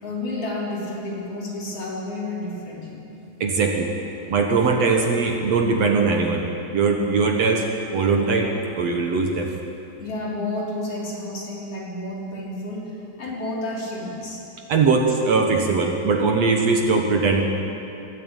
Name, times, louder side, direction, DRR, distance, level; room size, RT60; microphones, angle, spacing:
voice 1, 0.0-3.0 10.0-14.4, left 2 dB, 40° left, -4 dB, 4.5 m, -31 dB
voice 2, 3.4-3.9 4.3-7.6 7.9-8.5 8.8-9.5 14.7-17.4, right 4 dB, 55° right, 2 dB, 2.1 m, -20 dB
21.5 x 13.5 x 9.0 m, 3.0 s
omnidirectional pair, 4.2 m